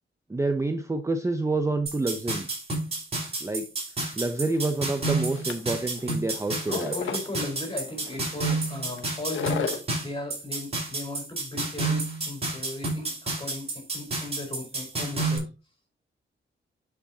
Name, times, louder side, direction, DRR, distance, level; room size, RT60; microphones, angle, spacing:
voice 1, 0.3-2.5 3.4-3.7 4.2-6.9, right 2 dB, 15° right, 6 dB, 0.7 m, -28 dB
sound 1, 1.9-15.4, right 3 dB, 30° right, 5.4 m, -30 dB
Shoveling snow, 4.2-9.8, left 6 dB, 80° left, 1.1 m, -35 dB
voice 2, 6.6-15.5, left 2 dB, 25° left, 2 dB, 4.3 m, -37 dB
11.0 x 5.8 x 2.8 m, 0.30 s
wide cardioid pair, 120°, 20 cm